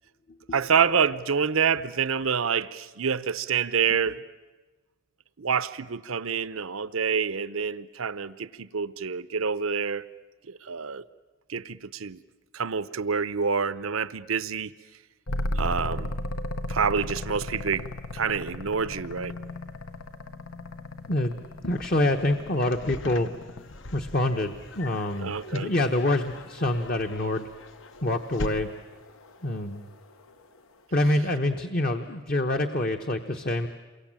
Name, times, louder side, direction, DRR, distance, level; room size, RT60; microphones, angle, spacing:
voice 1, 0.5-4.2 5.4-10.0 10.5-11.0 11.5-12.2 12.5-14.7 15.5-16.1 16.7-19.3 25.2-25.7, right 6 dB, 85° right, 0.8 m, -27 dB
sound 1, 15.3-23.8 26.1-30.6, left 1 dB, 90° left, 1.4 m, -36 dB
voice 2, 21.6-23.3 23.9-27.5 28.0-28.7 29.4-29.8 30.9-33.7, left 1 dB, 45° left, 1.1 m, -26 dB
sound 2, 21.7-28.5, left 2 dB, 65° left, 1.0 m, -42 dB
28.5 x 23.0 x 8.9 m
head